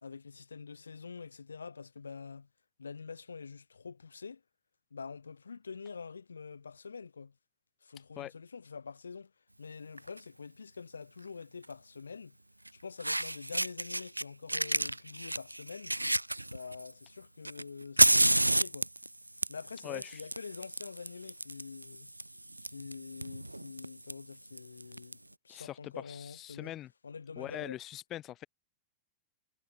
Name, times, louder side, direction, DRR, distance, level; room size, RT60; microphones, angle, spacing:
voice 1, 0.0-2.5 2.8-4.4 4.9-7.3 7.8-9.3 9.6-12.4 12.7-16.0 16.5-18.9 19.5-22.1 22.6-25.2 25.4-26.8 27.0-27.8, left 5 dB, 75° left, 2.7 m, -46 dB
Fire, 10.0-10.2 11.6-11.7 12.7-12.8 13.0-14.2 14.5-16.9 17.4-25.1, right 1 dB, 85° right, 0.6 m, -30 dB
voice 2, 19.8-20.2 25.5-26.9 27.4-28.5, left 13 dB, 35° left, 0.8 m, -42 dB
figure-of-eight pair, 90°, 0 cm